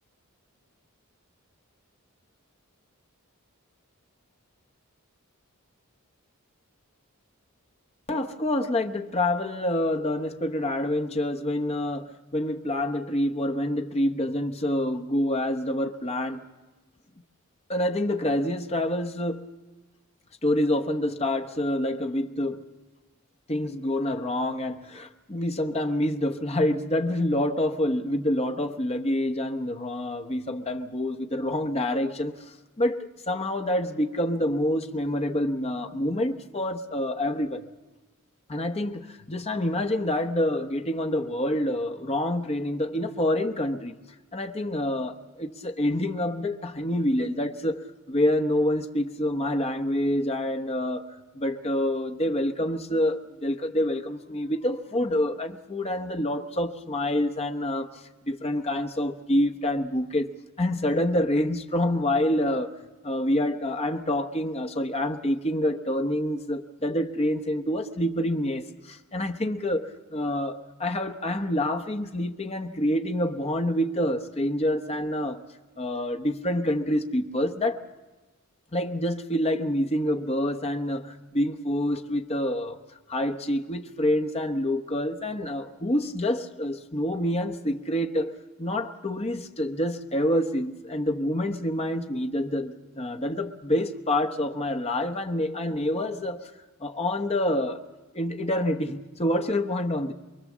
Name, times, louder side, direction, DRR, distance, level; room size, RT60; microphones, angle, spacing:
voice 1, 8.1-16.4 17.7-19.4 20.4-22.7 23.5-32.3 32.8-33.0 33.3-37.6 38.5-44.0 44.3-60.3 60.6-62.7 63.0-75.4 75.8-77.8 78.7-82.8 83.1-96.5 96.8-97.8 98.1-100.1, left 1 dB, 30° left, 1.0 m, -27 dB
24.5 x 22.5 x 7.3 m
head